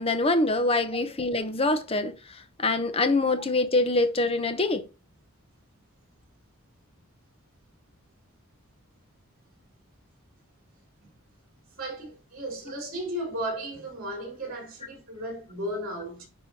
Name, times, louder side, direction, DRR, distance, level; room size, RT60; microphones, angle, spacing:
voice 1, 0.0-4.8, left 2 dB, 25° left, 0.9 m, -25 dB
voice 2, 11.8-16.3, right 1 dB, 40° right, 3.8 m, -35 dB
10.0 x 3.8 x 4.3 m
head